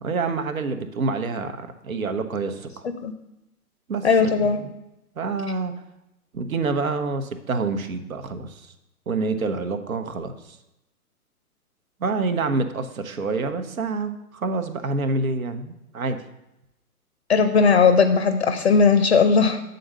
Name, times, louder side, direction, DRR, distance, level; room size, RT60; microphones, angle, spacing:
voice 1, 0.0-2.9 3.9-4.7 5.2-5.7 6.3-8.7 9.1-10.6 12.0-16.2, right 3 dB, 65° right, 9 dB, 0.9 m, -27 dB
voice 2, 4.0-4.6 17.3-19.6, left 5 dB, 45° left, 8 dB, 0.6 m, -17 dB
7.7 x 4.0 x 6.5 m, 0.89 s
figure-of-eight pair, 130°, 45 cm